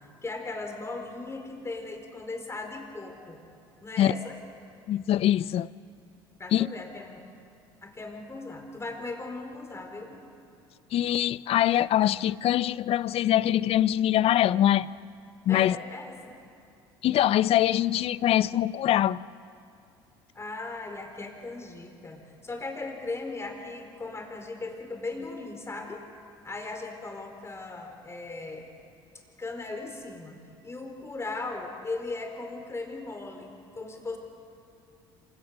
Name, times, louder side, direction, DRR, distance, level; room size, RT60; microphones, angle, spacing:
voice 1, 0.2-3.4 3.8-4.4 6.4-7.2 7.8-10.2 15.5-16.4 20.3-26.0 26.4-28.7 29.4-30.4 30.6-34.2, left 3 dB, 20° left, 4.6 m, -38 dB
voice 2, 4.9-5.7 6.5-6.7 10.9-14.9 15.5-15.8 17.0-19.2, left 12 dB, 50° left, 0.5 m, -23 dB
26.5 x 17.0 x 6.6 m
hypercardioid pair, 70°, 12 cm